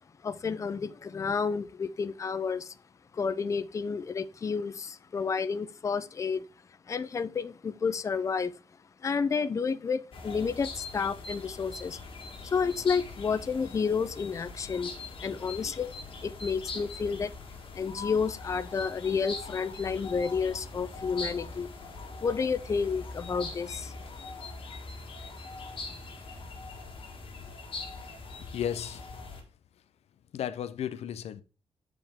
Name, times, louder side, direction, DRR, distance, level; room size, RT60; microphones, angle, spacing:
voice 1, 0.2-2.7 3.1-6.5 6.9-8.5 9.0-12.0 12.4-14.9 15.2-15.9 16.2-17.3 17.7-21.7 22.2-23.9, left 5 dB, 30° left, 0.4 m, -30 dB
sound 1, 10.1-29.4, left 3 dB, 55° left, 1.8 m, -42 dB
voice 2, 28.5-29.1 30.3-31.4, left 9 dB, 90° left, 0.5 m, -34 dB
7.3 x 5.0 x 3.5 m
wide cardioid pair, 155°, 11 cm